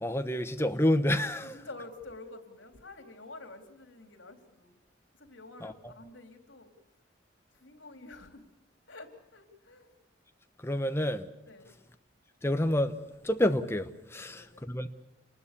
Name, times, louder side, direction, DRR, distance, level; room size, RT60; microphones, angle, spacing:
voice 1, 0.0-1.6 5.6-5.9 10.6-11.3 12.4-13.0 13.2-14.9, left 1 dB, 15° left, 1.0 m, -28 dB
voice 2, 1.4-4.8 5.2-6.7 7.5-8.4 8.9-9.9 11.5-11.8 14.1-14.7, left 2 dB, 75° left, 3.8 m, -49 dB
28.0 x 20.0 x 6.9 m
head